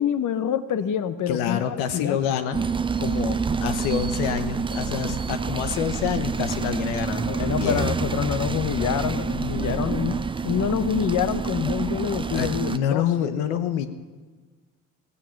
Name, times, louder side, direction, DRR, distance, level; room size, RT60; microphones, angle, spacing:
voice 1, 0.0-2.2 7.3-10.2 10.4-13.0, left 9 dB, 50° left, 12 dB, 1.0 m, -26 dB
voice 2, 1.3-2.6 3.0-8.0 12.3-13.9, left 9 dB, 80° left, 9 dB, 1.0 m, -27 dB
sound 1, 2.5-12.8, right 5 dB, 15° right, 0.4 m, -27 dB
16.0 x 15.5 x 5.9 m, 1.4 s
supercardioid pair, 70°, 40 cm